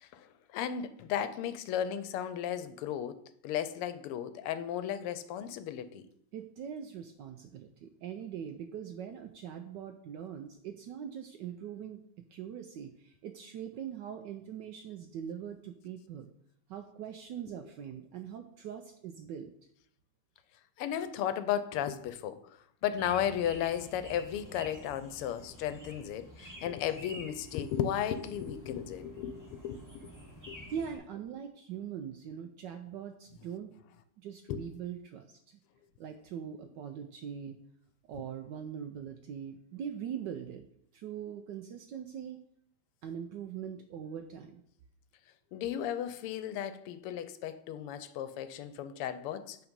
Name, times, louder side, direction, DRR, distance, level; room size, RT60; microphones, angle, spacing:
voice 1, 0.5-6.0 20.8-22.4 22.8-30.1 30.5-30.6 34.5-34.6 45.5-49.6, left 10 dB, 90° left, 1.6 m, -35 dB
voice 2, 6.3-12.0 12.3-16.3 16.7-19.5 30.7-33.8 34.2-35.6 36.0-37.6 38.1-40.6 40.9-42.4 43.0-44.6, right 8 dB, 80° right, 1.0 m, -42 dB
sound 1, 23.0-31.0, equal, 10° right, 1.4 m, -49 dB
8.6 x 4.0 x 5.2 m
omnidirectional pair, 2.4 m